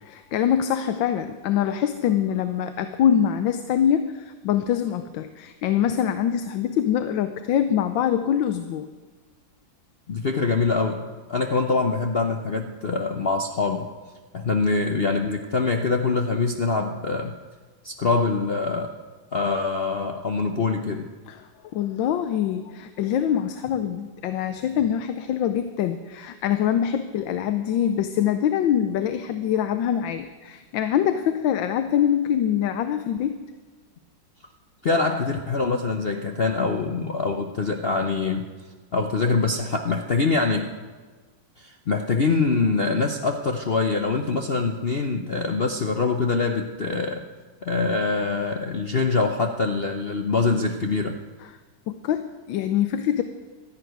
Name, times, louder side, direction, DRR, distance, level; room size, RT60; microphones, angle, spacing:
voice 1, 0.0-8.9 21.3-33.4 51.4-51.5 51.9-53.2, left 9 dB, 90° left, 10 dB, 1.4 m, -24 dB
voice 2, 10.1-11.0 11.3-13.9 14.3-17.3 17.8-18.9 19.3-21.1 34.8-38.5 38.9-40.7 41.6-47.2 47.6-51.2, left 4 dB, 50° left, 5 dB, 0.7 m, -24 dB
12.5 x 11.0 x 9.2 m, 1.4 s
omnidirectional pair, 2.0 m